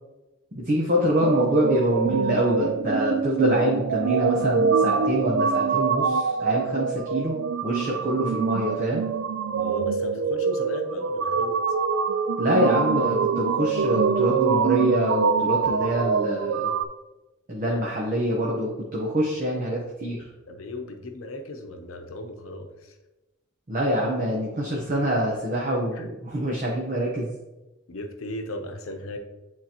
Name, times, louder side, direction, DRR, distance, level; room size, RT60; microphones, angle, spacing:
voice 1, 0.5-9.0 12.4-16.7 17.5-20.3 23.7-27.3, equal, 40° right, -2 dB, 0.8 m, -25 dB
sound 1, 1.2-16.8, right 5 dB, 75° right, 0.3 m, -24 dB
voice 2, 9.6-11.6 20.5-23.0 25.9-26.1 27.9-29.2, left 1 dB, 85° left, 4 dB, 0.8 m, -37 dB
9.0 x 3.8 x 2.9 m, 1.1 s
head